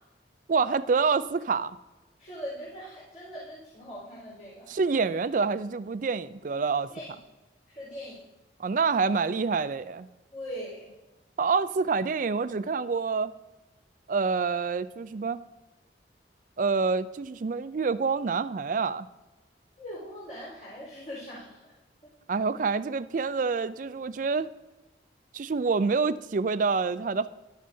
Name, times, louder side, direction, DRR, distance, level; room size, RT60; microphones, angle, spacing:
voice 1, 0.5-1.8 4.7-6.9 8.6-10.1 11.4-13.3 14.1-15.4 16.6-19.1 22.3-24.5 25.3-27.3, right 4 dB, 45° right, 14 dB, 0.4 m, -27 dB
voice 2, 2.2-4.7 6.9-7.2 7.7-8.2 10.3-10.9 19.8-21.7, equal, 45° left, -7 dB, 4.3 m, -41 dB
14.0 x 11.5 x 2.7 m, 1.1 s
head